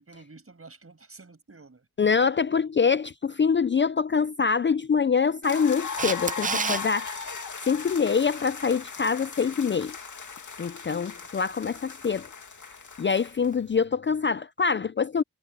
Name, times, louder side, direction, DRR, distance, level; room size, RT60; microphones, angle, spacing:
voice 1, 0.0-2.1, right 3 dB, 40° right, 7.5 m, -50 dB
voice 2, 2.0-7.3 7.6-10.0 10.6-12.3 13.0-15.2, left 5 dB, 35° left, 0.5 m, -25 dB
sound 1, 5.4-13.5, left 5 dB, 55° left, 2.7 m, -38 dB
Camera, 6.0-6.8 13.5-13.6, right 5 dB, 25° right, 0.4 m, -28 dB
cardioid pair, 70°, 36 cm